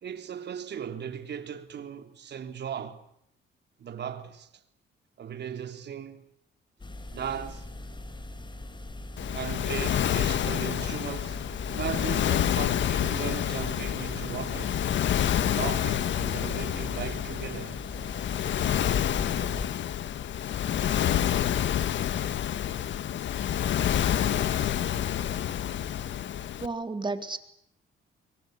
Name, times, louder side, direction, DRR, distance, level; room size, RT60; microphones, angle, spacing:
voice 1, 0.0-3.0 3.8-4.6 5.2-6.3 7.1-7.7 9.3-11.4 11.7-14.8 15.5-17.8, right 8 dB, 60° right, 3.5 m, -37 dB
sound 1, 6.8-19.7, left 1 dB, 25° left, 4.1 m, -41 dB
Waves surf, 9.2-26.7, left 10 dB, 70° left, 1.7 m, -28 dB
voice 2, 26.6-27.4, right 3 dB, 25° right, 3.6 m, -32 dB
26.5 x 23.5 x 8.2 m
cardioid pair, 90°, 20 cm